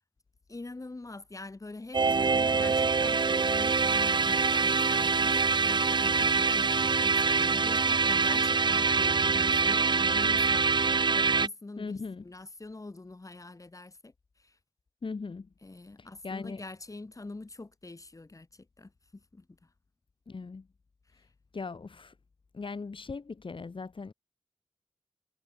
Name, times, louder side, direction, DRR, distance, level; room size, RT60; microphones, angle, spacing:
voice 1, 0.5-14.6 15.6-19.7 21.1-21.3, left 2 dB, 35° left, 7.4 m, -45 dB
sound 1, 1.9-11.5, right 4 dB, 50° right, 0.7 m, -25 dB
voice 2, 11.8-12.2 15.0-15.5 16.0-16.6 20.3-20.7 21.5-22.1 22.5-24.1, left 4 dB, 55° left, 3.6 m, -39 dB
wide cardioid pair, 105°, 10 cm